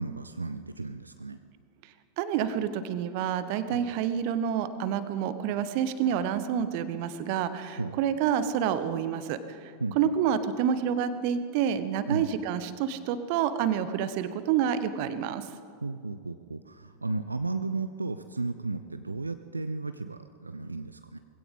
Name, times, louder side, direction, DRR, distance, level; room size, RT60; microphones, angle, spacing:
voice 1, 0.0-1.4 3.7-3.8 7.8-8.0 9.8-10.0 12.1-12.3 15.8-21.2, right 3 dB, 80° right, 10 dB, 0.4 m, -34 dB
voice 2, 2.2-9.4 10.0-15.4, right 8 dB, 45° right, 12 dB, 0.8 m, -28 dB
20.5 x 16.5 x 3.7 m, 2.3 s
figure-of-eight pair, 90°, 0 cm